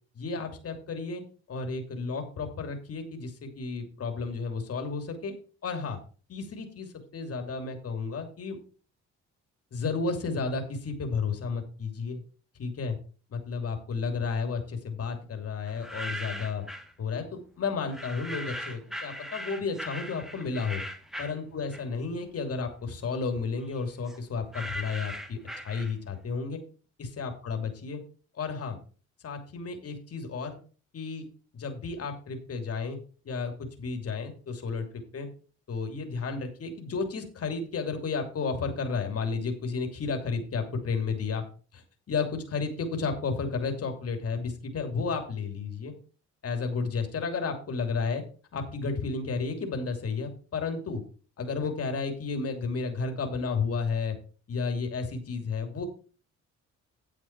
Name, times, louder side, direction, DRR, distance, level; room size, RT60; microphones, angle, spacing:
voice 1, 0.1-5.3 5.6-6.0 6.3-8.6 9.7-12.2 12.6-13.0 13.3-16.6 17.0-20.8 21.2-26.6 27.0-28.0 28.4-28.8 29.2-30.6 30.9-31.3 31.5-33.0 33.2-35.3 35.7-41.4 41.7-41.8 42.1-45.9 46.4-48.2 48.5-51.0 51.4-54.2 54.5-55.9, left 4 dB, 50° left, 5 dB, 2.9 m, -32 dB
sound 1, 15.7-16.9 17.9-22.1 22.5-26.2, equal, ahead, 1.8 m, -39 dB
10.0 x 7.6 x 4.6 m, 0.37 s
cardioid pair, 90°, 30 cm